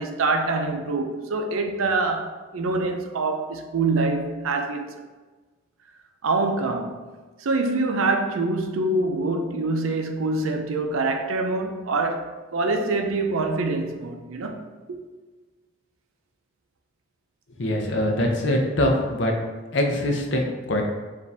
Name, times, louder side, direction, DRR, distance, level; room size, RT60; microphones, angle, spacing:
voice 1, 0.0-4.9 6.2-7.0 7.4-15.0, right 3 dB, 85° right, 0.5 m, -25 dB
voice 2, 17.6-19.3 19.7-20.8, left 1 dB, 60° left, 0.6 m, -23 dB
5.0 x 2.6 x 3.3 m
head